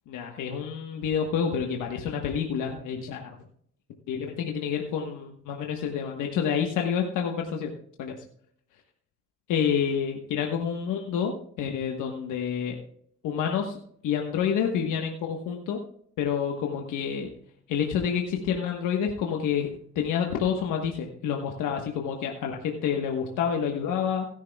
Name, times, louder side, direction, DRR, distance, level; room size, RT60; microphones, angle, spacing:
voice 1, 0.1-3.3 4.1-8.2 9.5-12.8 13.2-13.8 14.0-15.8 16.2-17.3 17.7-19.7 19.9-24.3, left 7 dB, 85° left, 2 dB, 1.3 m, -28 dB
16.5 x 10.5 x 2.3 m, 0.64 s
cardioid pair, 90°, 30 cm